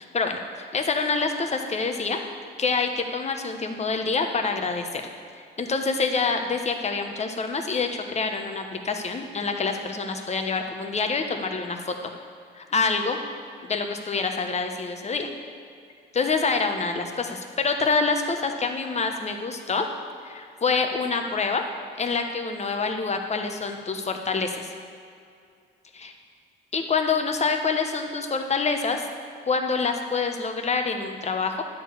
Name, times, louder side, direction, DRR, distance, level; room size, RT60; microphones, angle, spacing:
voice 1, 0.0-2.2 2.6-5.0 5.4-11.9 12.5-13.2 13.6-15.3 16.1-19.9 20.2-21.7 22.0-24.7 26.0-26.1 26.7-29.0 29.5-31.6, left 4 dB, 35° left, 5 dB, 1.0 m, -26 dB
10.0 x 4.7 x 7.7 m, 2.4 s
cardioid pair, 90°, 20 cm